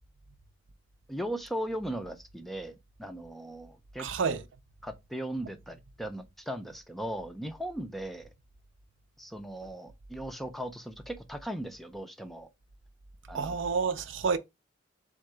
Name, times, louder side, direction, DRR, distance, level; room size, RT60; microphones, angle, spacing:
voice 1, 1.1-4.4 4.8-8.3 9.2-12.5 13.3-13.6, right 1 dB, ahead, 0.4 m, -38 dB
voice 2, 4.0-4.4 13.3-14.4, right 5 dB, 70° right, 0.5 m, -29 dB
3.7 x 3.6 x 3.2 m
head